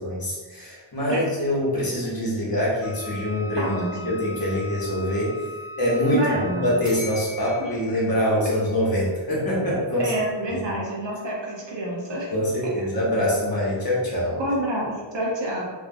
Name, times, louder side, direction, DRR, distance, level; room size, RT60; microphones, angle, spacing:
voice 1, 0.0-5.4 5.8-10.1 10.4-10.7 12.3-14.4, left 1 dB, 50° left, -6 dB, 1.0 m, -25 dB
Wind instrument woodwind instrument, 2.8-7.0, left 1 dB, 5° right, 0.4 m, -39 dB
voice 2, 3.6-4.1 6.1-6.7 7.6-7.7 10.0-12.3 14.4-15.6, right 1 dB, 70° right, -3 dB, 0.8 m, -27 dB
sound 1, 6.8-9.6, left 3 dB, 40° right, 1.2 m, -42 dB
2.6 x 2.4 x 2.5 m, 1.4 s
wide cardioid pair, 50°, 46 cm